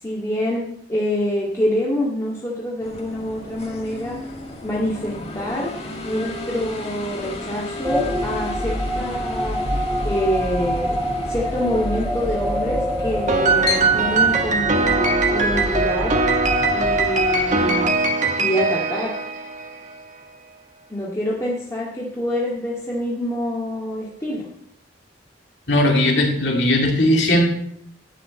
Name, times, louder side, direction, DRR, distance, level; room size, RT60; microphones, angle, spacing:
voice 1, 0.0-4.2 4.6-5.7 6.0-9.7 10.0-11.0 11.3-16.2 16.7-17.9 18.4-19.1 20.9-24.5, equal, 15° left, -6 dB, 2.0 m, -26 dB
Computer Start Up, 2.8-14.4, left 2 dB, 35° left, 1.9 m, -33 dB
sound 1, 7.8-17.9, equal, 5° right, 0.8 m, -26 dB
Piano, 13.3-19.8, right 3 dB, 45° right, 1.3 m, -21 dB
voice 2, 25.7-27.5, left 1 dB, 70° left, 0 dB, 2.3 m, -18 dB
11.5 x 5.3 x 8.1 m, 0.71 s
head